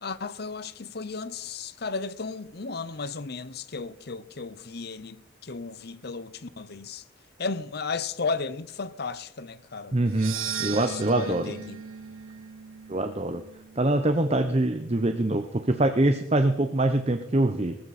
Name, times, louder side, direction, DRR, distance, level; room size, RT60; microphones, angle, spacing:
voice 1, 0.0-7.0 7.4-10.0 10.8-11.8, left 4 dB, 50° left, 0.8 m, -34 dB
voice 2, 9.9-11.5 12.9-13.4 13.8-17.8, right 2 dB, 30° right, 0.8 m, -24 dB
sound 1, 10.1-14.4, right 7 dB, 85° right, 0.9 m, -37 dB
19.5 x 14.0 x 4.2 m
head